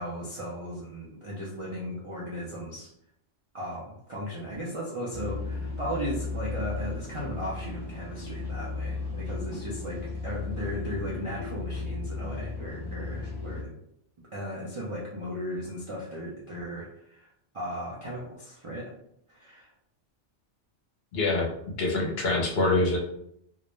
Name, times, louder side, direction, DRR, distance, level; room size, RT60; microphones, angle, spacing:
voice 1, 0.0-2.9 3.5-13.7 14.3-18.9 19.3-19.7, equal, 50° right, -6 dB, 0.3 m, -36 dB
sound 1, 5.1-13.6, left 3 dB, 40° left, 0.3 m, -35 dB
voice 2, 21.1-23.0, left 2 dB, 65° left, -1 dB, 0.8 m, -25 dB
2.4 x 2.1 x 3.0 m, 0.74 s
omnidirectional pair, 1.2 m